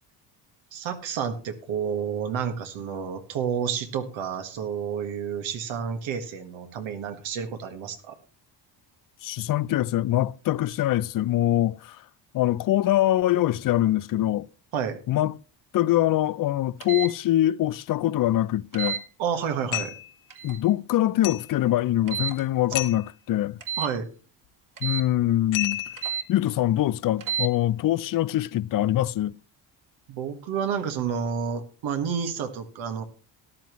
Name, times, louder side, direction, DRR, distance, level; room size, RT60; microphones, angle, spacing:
voice 1, 0.7-8.2 14.7-15.0 19.2-20.0 23.8-24.1 30.1-33.0, right 7 dB, 85° right, 1.7 m, -30 dB
voice 2, 9.2-12.0 12.3-14.5 15.1-15.4 15.7-19.0 20.4-23.6 24.8-25.8 26.3-29.3, left 13 dB, 50° left, 0.5 m, -24 dB
sound 1, 16.8-17.1 18.7-19.0 20.3-20.6 22.1-22.4 23.6-23.9 24.8-25.1 26.0-26.3 27.2-27.5, right 8 dB, 45° right, 1.9 m, -30 dB
sound 2, 19.7-20.1 21.2-21.6 22.7-23.1 25.5-26.1, left 13 dB, 90° left, 1.3 m, -30 dB
13.5 x 11.0 x 3.1 m
cardioid pair, 100°, 46 cm